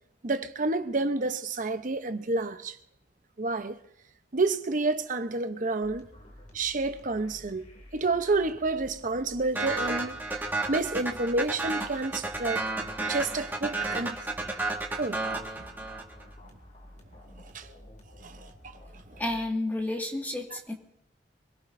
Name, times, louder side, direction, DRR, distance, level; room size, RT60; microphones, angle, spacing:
voice 1, 0.2-2.8 3.4-3.8 4.3-6.1 6.5-7.6 7.9-10.2 10.7-12.7 13.0-14.2 15.0-15.2 17.5-17.7 18.2-18.5, right 3 dB, 45° right, 0.9 m, -29 dB
sound 1, 5.8-19.5, left 1 dB, 40° left, 2.7 m, -51 dB
sound 2, 9.5-16.2, right 2 dB, 10° right, 1.8 m, -32 dB
voice 2, 19.2-20.7, left 1 dB, 10° left, 2.0 m, -31 dB
25.0 x 17.5 x 2.7 m
head